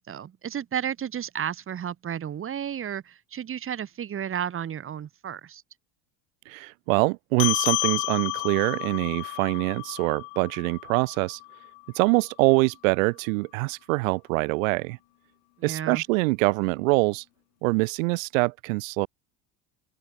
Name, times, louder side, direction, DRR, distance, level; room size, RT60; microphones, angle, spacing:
voice 1, 0.0-5.6 15.6-16.0, right 9 dB, 35° right, 5.5 m, -32 dB
voice 2, 6.5-11.4 11.9-15.0 15.6-17.2 17.6-19.1, right 26 dB, 90° right, 2.7 m, -24 dB
sound 1, 7.4-12.2, left 30 dB, 85° left, 1.1 m, -31 dB
open air
cardioid pair, 140°, 39 cm